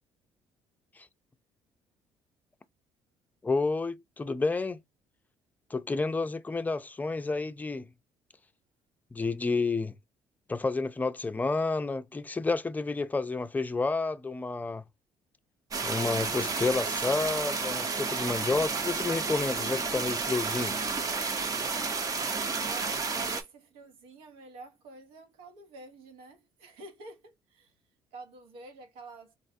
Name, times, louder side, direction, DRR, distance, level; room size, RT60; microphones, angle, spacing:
voice 1, 3.4-4.8 5.7-7.9 9.1-9.9 10.5-14.8 15.8-20.8, left 3 dB, 15° left, 0.4 m, -30 dB
sound 1, 15.7-23.4, right 4 dB, 40° right, 0.7 m, -31 dB
voice 2, 22.4-27.7 28.1-29.3, right 3 dB, 85° right, 0.9 m, -48 dB
4.1 x 2.1 x 2.6 m
supercardioid pair, 75°, 10 cm